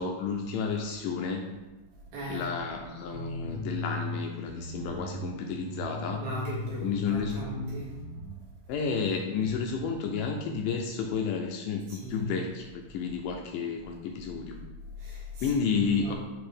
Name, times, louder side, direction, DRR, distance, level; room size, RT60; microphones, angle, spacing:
voice 1, 0.0-1.5 2.3-6.2 6.8-7.5 8.7-14.6 15.4-16.1, left 5 dB, 80° left, 2 dB, 2.0 m, -31 dB
voice 2, 2.1-2.5 6.1-7.9 9.3-9.4 11.9-12.3 15.0-16.2, equal, 85° right, -7 dB, 3.8 m, -38 dB
sound 1, 2.9-4.2 4.5-8.2, left 1 dB, 65° right, 3.1 m, -37 dB
9.2 x 3.3 x 3.4 m, 1.1 s
omnidirectional pair, 4.1 m